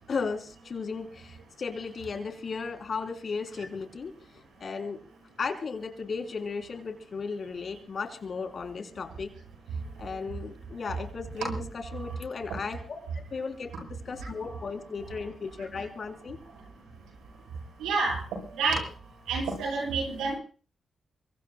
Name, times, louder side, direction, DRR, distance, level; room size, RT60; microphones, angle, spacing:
voice 1, 0.1-5.0 5.4-9.3 10.0-16.4, left 5 dB, 60° left, 6 dB, 3.2 m, -35 dB
voice 2, 17.8-18.2 18.5-18.8 19.3-20.4, right 4 dB, 85° right, 1 dB, 7.2 m, -28 dB
24.0 x 24.0 x 2.2 m, 0.39 s
supercardioid pair, 40°, 0 cm